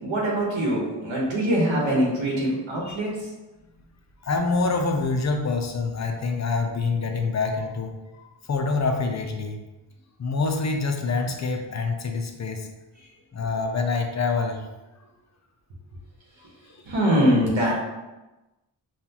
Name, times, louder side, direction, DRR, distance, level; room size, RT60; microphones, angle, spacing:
voice 1, 0.0-3.3 16.8-17.7, equal, 75° right, -4 dB, 1.1 m, -23 dB
voice 2, 4.2-8.2 8.5-9.6 10.2-12.7 13.3-14.6 16.7-16.8, left 4 dB, 40° left, 3 dB, 0.5 m, -26 dB
5.5 x 2.3 x 2.8 m, 1.1 s
wide cardioid pair, 115°, 47 cm